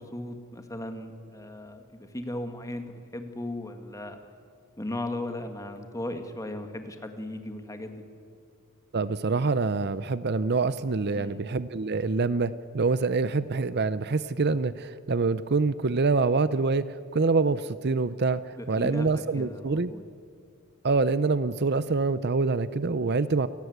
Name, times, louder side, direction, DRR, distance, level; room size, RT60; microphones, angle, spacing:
voice 1, 0.0-4.2 4.8-8.0 11.1-11.5 18.6-20.0, left 1 dB, 15° left, 6 dB, 2.0 m, -37 dB
voice 2, 8.9-19.9 20.8-23.5, right 4 dB, 50° right, 15 dB, 0.7 m, -26 dB
28.5 x 19.0 x 8.1 m, 2.3 s
head